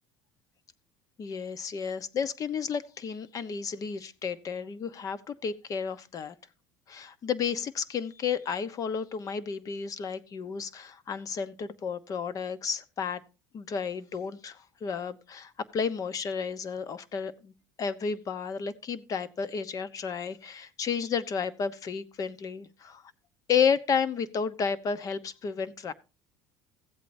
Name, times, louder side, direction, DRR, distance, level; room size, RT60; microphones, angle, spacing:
voice 1, 1.2-6.3 6.9-13.2 13.5-23.0 23.5-25.9, left 6 dB, 40° left, 1.0 m, -32 dB
15.5 x 8.3 x 2.7 m
supercardioid pair, 105°, 9 cm